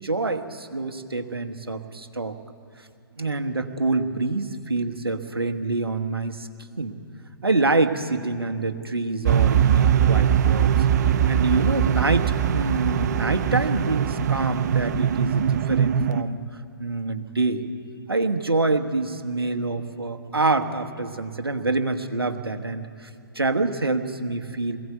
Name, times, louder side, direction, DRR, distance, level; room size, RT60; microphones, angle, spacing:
voice 1, 0.0-2.4 3.2-6.5 6.8-7.0 7.4-10.8 11.3-16.4 16.8-17.6 18.1-23.1 23.3-24.8, right 3 dB, 85° right, 6 dB, 1.4 m, -26 dB
sound 1, 9.2-16.2, right 9 dB, 45° right, 0.6 m, -21 dB
22.0 x 16.0 x 8.0 m, 2.4 s
figure-of-eight pair, 125°, 12 cm